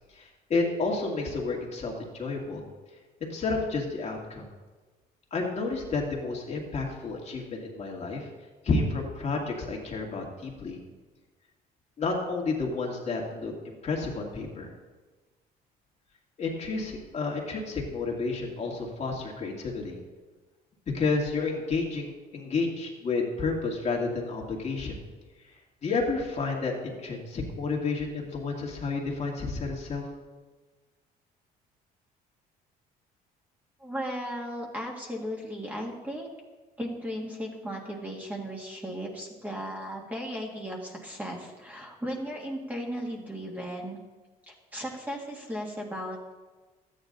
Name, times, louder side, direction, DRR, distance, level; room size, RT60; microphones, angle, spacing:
voice 1, 0.1-2.6 3.2-4.4 5.3-8.3 8.6-10.8 12.0-14.7 16.4-20.0 20.9-25.0 25.8-30.1, left 3 dB, 40° left, -1 dB, 2.3 m, -30 dB
voice 2, 33.8-36.3 36.8-44.0 44.5-46.2, equal, 10° right, -1 dB, 1.9 m, -36 dB
13.0 x 9.3 x 4.0 m, 1.3 s
cardioid pair, 110°, 17 cm